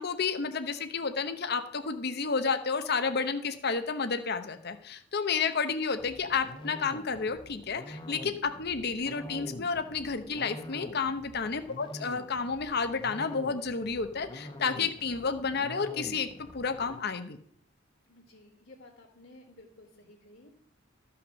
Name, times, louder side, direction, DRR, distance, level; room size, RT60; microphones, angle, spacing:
voice 1, 0.0-16.3 16.5-17.4, left 5 dB, 55° left, 9 dB, 0.9 m, -31 dB
sound 1, 6.0-17.0, left 1 dB, 25° left, 1.0 m, -45 dB
voice 2, 18.0-20.6, left 2 dB, 90° left, -7 dB, 2.8 m, -55 dB
13.5 x 5.8 x 6.3 m, 0.65 s
head